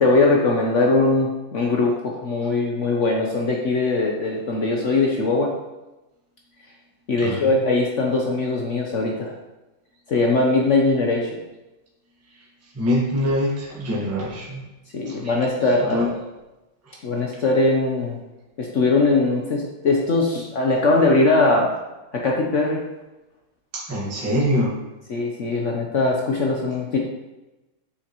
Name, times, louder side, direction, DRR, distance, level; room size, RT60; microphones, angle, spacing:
voice 1, 0.0-5.5 7.1-9.3 10.1-11.3 14.9-16.0 17.0-18.2 18.6-21.7 22.1-22.8 25.1-27.0, left 3 dB, 75° left, -1 dB, 0.6 m, -20 dB
voice 2, 12.7-14.6 15.1-15.3 15.8-16.1 23.7-24.8, equal, 10° right, -5 dB, 1.1 m, -24 dB
8.1 x 5.9 x 3.0 m, 1.0 s
omnidirectional pair, 2.4 m